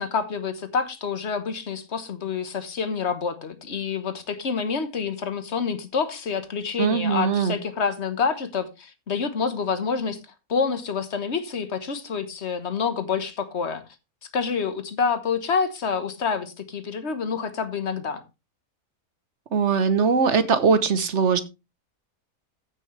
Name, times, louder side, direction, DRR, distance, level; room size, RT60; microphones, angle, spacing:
voice 1, 0.0-10.2 10.5-13.8 14.3-18.2, left 5 dB, 50° left, 1.5 m, -27 dB
voice 2, 6.8-7.5 19.5-21.4, right 5 dB, 55° right, 1.2 m, -21 dB
15.0 x 6.3 x 3.3 m
omnidirectional pair, 1.6 m